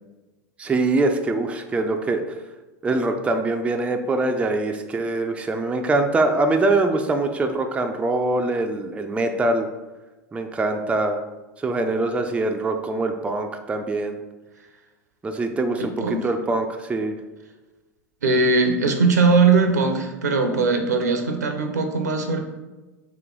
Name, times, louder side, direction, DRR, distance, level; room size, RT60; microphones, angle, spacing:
voice 1, 0.6-2.2 2.8-9.7 10.3-11.2 11.6-14.2 15.2-17.1, right 2 dB, 15° right, 5 dB, 0.4 m, -23 dB
voice 2, 15.8-16.3 18.2-22.4, right 4 dB, 85° right, 4 dB, 0.6 m, -20 dB
3.1 x 3.0 x 3.7 m, 1.1 s
hypercardioid pair, 85°, 9 cm